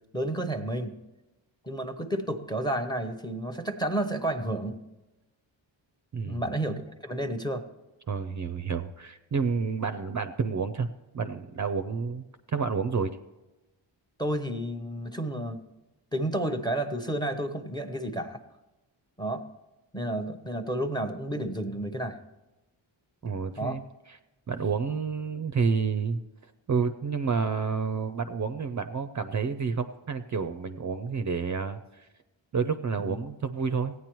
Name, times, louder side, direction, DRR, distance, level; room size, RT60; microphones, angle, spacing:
voice 1, 0.1-1.0 1.6-4.8 6.3-7.6 14.2-15.6 16.1-18.4 19.2-19.4 19.9-22.2 23.2-23.8 33.0-33.2, right 1 dB, 10° left, 8 dB, 0.7 m, -31 dB
voice 2, 8.1-10.9 11.1-12.2 12.5-13.1 23.2-23.8 24.5-26.2 26.7-32.1 32.5-33.9, right 5 dB, 40° right, 10 dB, 0.4 m, -29 dB
16.5 x 9.4 x 3.0 m, 1.0 s
wide cardioid pair, 145°, 48 cm